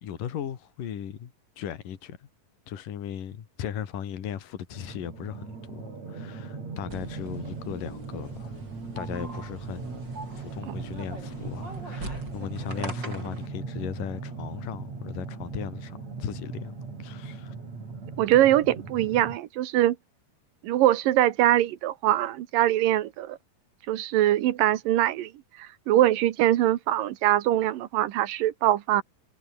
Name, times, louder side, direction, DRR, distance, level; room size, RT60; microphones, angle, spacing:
voice 1, 0.0-2.3 2.7-8.6 9.0-10.1 10.4-17.6, left 9 dB, 75° left, 3.8 m, -37 dB
sound 1, 4.7-19.4, right 4 dB, 50° right, 6.6 m, -38 dB
sound 2, 6.9-13.5, right 2 dB, 30° right, 8.8 m, -42 dB
voice 2, 18.2-20.0 20.6-23.4 23.9-25.3 25.6-29.0, right 13 dB, 80° right, 2.9 m, -23 dB
omnidirectional pair, 3.9 m